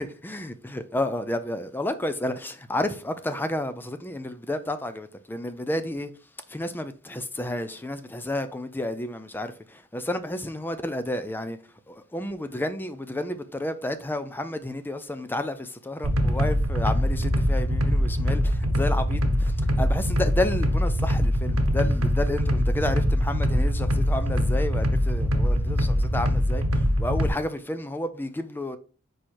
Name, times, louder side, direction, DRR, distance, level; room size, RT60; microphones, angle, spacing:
voice 1, 0.0-6.1 6.5-11.6 11.9-28.8, left 1 dB, 10° left, 0.4 m, -31 dB
sound 1, 16.0-27.3, equal, 90° right, 0.9 m, -23 dB
4.9 x 4.3 x 4.5 m
head